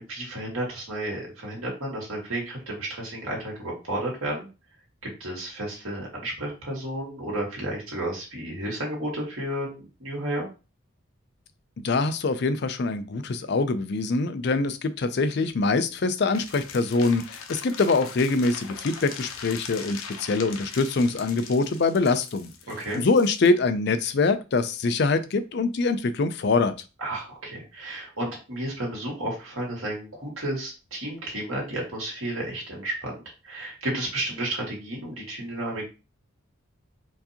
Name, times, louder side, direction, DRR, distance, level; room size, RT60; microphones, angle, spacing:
voice 1, 0.0-4.5 5.0-10.5 22.7-23.0 27.0-35.9, right 1 dB, 85° right, -2 dB, 1.9 m, -32 dB
voice 2, 11.8-22.5 22.9-26.7, left 3 dB, 50° left, 10 dB, 0.4 m, -24 dB
sound 1, 16.3-23.5, left 6 dB, 85° left, 0.7 m, -41 dB
4.5 x 2.7 x 2.8 m, 0.30 s
head